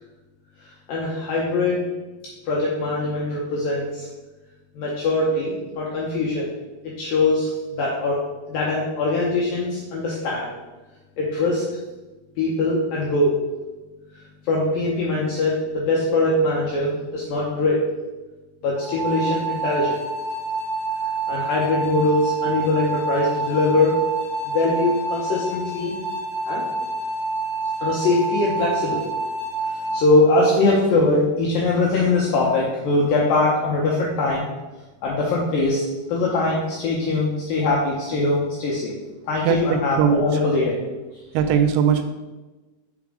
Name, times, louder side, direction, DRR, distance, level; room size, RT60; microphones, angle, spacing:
voice 1, 0.9-1.8 2.5-4.1 4.8-6.5 6.8-8.2 8.5-10.5 11.2-11.7 12.4-13.4 14.4-17.8 18.6-20.0 21.3-24.0 24.4-25.9 26.5-26.7 27.8-29.0 29.7-34.5 35.0-38.9 39.3-40.8, left 2 dB, 80° left, -4 dB, 2.1 m, -22 dB
sound 1, 18.7-30.0, right 3 dB, 30° left, 2.0 m, -28 dB
voice 2, 39.5-40.2 41.3-42.0, right 7 dB, 90° right, 7 dB, 3.0 m, -19 dB
6.1 x 4.2 x 4.8 m, 1.2 s
omnidirectional pair, 5.2 m